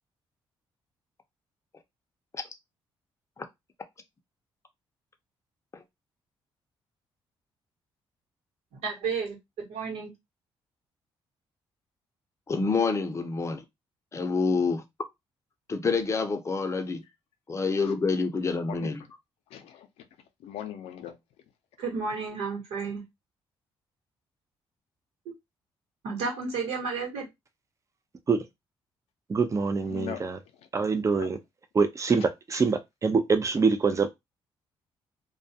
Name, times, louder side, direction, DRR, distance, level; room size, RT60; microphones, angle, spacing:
voice 1, 8.8-9.4 9.7-10.1 21.8-23.0 26.0-27.3, right 4 dB, 90° right, 1.1 m, -31 dB
voice 2, 12.5-13.6 14.2-14.8 15.7-17.0 17.5-19.0, left 4 dB, 30° left, 0.6 m, -27 dB
voice 3, 19.5-19.9 20.4-21.2 29.9-30.3 31.2-31.3, left 9 dB, 85° left, 0.5 m, -39 dB
voice 4, 29.3-30.4 30.7-31.4 31.7-32.2 32.5-34.1, right 4 dB, 30° right, 0.5 m, -25 dB
2.3 x 2.2 x 2.7 m
cardioid pair, 80°, 10 cm